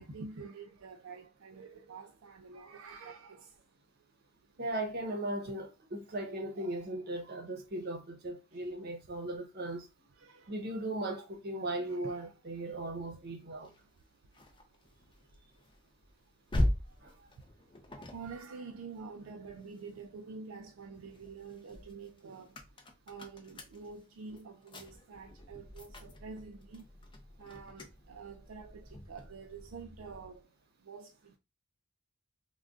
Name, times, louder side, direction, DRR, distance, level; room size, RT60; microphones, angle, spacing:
voice 1, 0.0-3.5 6.1-6.9 10.2-10.5 11.0-11.6 11.9-12.3 12.6-13.0 17.9-22.5 23.1-26.8 27.4-30.4 30.9-31.4, right 5 dB, 80° right, 0.4 m, -48 dB
voice 2, 4.6-9.8 10.5-13.7 17.0-17.1, right 1 dB, 50° right, 0.8 m, -37 dB
sound 1, 13.6-20.2 20.6-30.4, left 1 dB, 25° left, 0.4 m, -41 dB
2.5 x 2.2 x 3.5 m
head